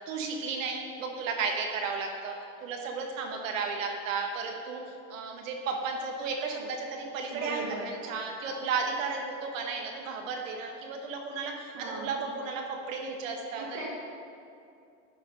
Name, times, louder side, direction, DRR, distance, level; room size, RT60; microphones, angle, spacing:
voice 1, 0.1-4.8 5.1-13.6, right 4 dB, 80° right, 2 dB, 1.5 m, -34 dB
voice 2, 7.3-8.0 11.7-12.2 13.6-13.9, right 3 dB, 55° right, -6 dB, 1.8 m, -38 dB
11.5 x 4.3 x 5.4 m, 2.5 s
supercardioid pair, 130°, 38 cm